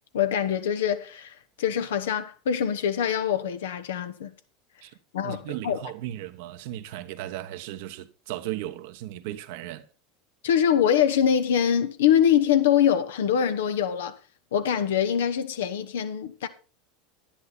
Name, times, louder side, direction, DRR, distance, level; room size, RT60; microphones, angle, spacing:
voice 1, 0.1-4.3 5.1-5.8 10.4-14.2 14.5-16.5, left 9 dB, 70° left, 1.2 m, -24 dB
voice 2, 5.2-9.9, right 13 dB, 60° right, 1.1 m, -36 dB
10.5 x 10.5 x 4.2 m
hypercardioid pair, 80°, 0 cm